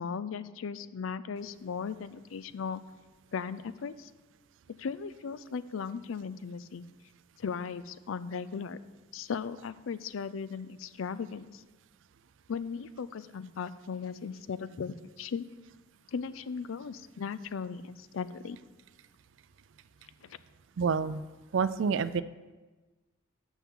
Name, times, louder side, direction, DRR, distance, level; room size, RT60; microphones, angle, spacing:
voice 1, 0.0-2.8 3.3-4.1 4.8-6.9 7.4-8.8 9.1-11.6 12.5-15.5 16.1-18.6 20.2-20.4, left 6 dB, 85° left, 15 dB, 0.4 m, -37 dB
voice 2, 20.8-21.2 21.5-22.2, right 5 dB, 65° right, 15 dB, 0.4 m, -28 dB
11.5 x 7.2 x 3.7 m, 1.2 s
head